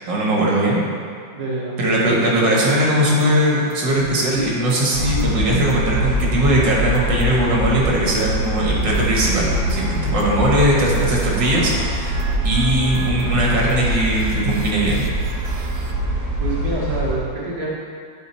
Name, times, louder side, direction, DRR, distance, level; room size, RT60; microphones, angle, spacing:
voice 1, 0.1-0.8 1.8-12.2 12.4-15.0, right 1 dB, 70° right, -3 dB, 1.9 m, -19 dB
voice 2, 1.3-1.7 2.1-2.4 16.4-17.7, right 2 dB, 25° right, -5 dB, 1.1 m, -27 dB
sound 1, 2.6-15.9, right 4 dB, 85° right, 1.5 m, -37 dB
sound 2, 4.9-17.2, right 1 dB, 50° right, 2.7 m, -23 dB
10.0 x 3.9 x 4.3 m, 2.2 s
omnidirectional pair, 2.1 m